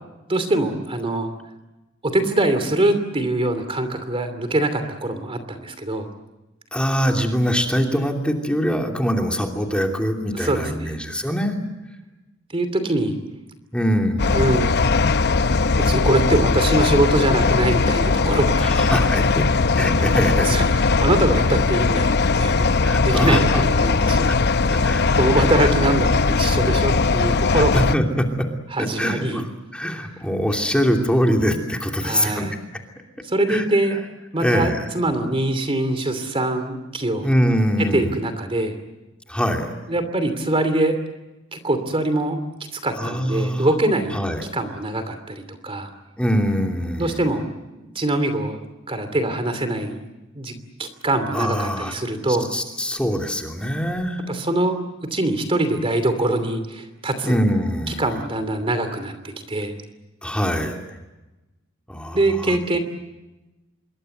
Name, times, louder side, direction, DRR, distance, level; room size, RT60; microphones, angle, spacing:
voice 1, 0.3-1.3 2.0-6.1 10.3-11.0 12.5-13.2 14.3-14.7 15.8-19.3 20.4-22.7 23.0-24.3 24.7-24.8 25.1-28.0 28.7-29.4 32.0-32.5 33.2-34.0 34.3-37.3 37.9-38.8 39.9-41.0 41.5-42.4 42.7-44.2 44.5-45.9 47.0-47.4 47.9-48.6 48.9-50.0 50.3-50.5 50.8-52.5 54.3-54.8 55.1-57.4 57.9-59.7 62.1-62.8, right 1 dB, 25° right, 9 dB, 2.8 m, -23 dB
voice 2, 6.7-11.5 13.7-14.4 18.6-19.4 19.8-20.5 22.8-23.6 24.3-24.4 24.7-25.1 25.6-25.7 26.6-26.7 27.4-28.3 29.0-29.4 29.7-32.5 33.5-33.7 34.4-34.9 37.2-38.2 39.3-39.7 43.0-43.7 44.1-44.5 46.2-47.2 51.3-54.2 57.2-58.0 60.2-60.8 61.9-62.6, equal, 5° left, 2 dB, 2.8 m, -23 dB
sound 1, 14.2-27.9, left 4 dB, 55° left, 0.8 m, -19 dB
27.0 x 23.0 x 7.9 m, 1.1 s
head